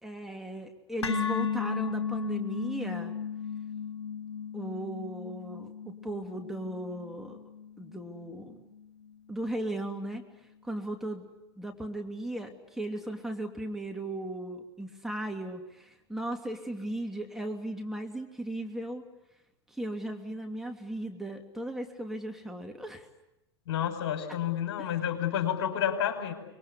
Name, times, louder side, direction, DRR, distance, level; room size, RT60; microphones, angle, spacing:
voice 1, 0.0-3.1 4.5-7.5 7.8-8.7 9.3-10.2 10.6-11.3 11.6-19.0 19.7-23.1 24.8-24.9, right 1 dB, ahead, 3 dB, 2.9 m, -37 dB
sound 1, 1.0-9.1, left 7 dB, 85° left, 2.1 m, -35 dB
voice 2, 23.7-26.3, left 9 dB, 65° left, 6 dB, 5.4 m, -30 dB
26.0 x 22.0 x 9.8 m, 0.90 s
hypercardioid pair, 90°, 14 cm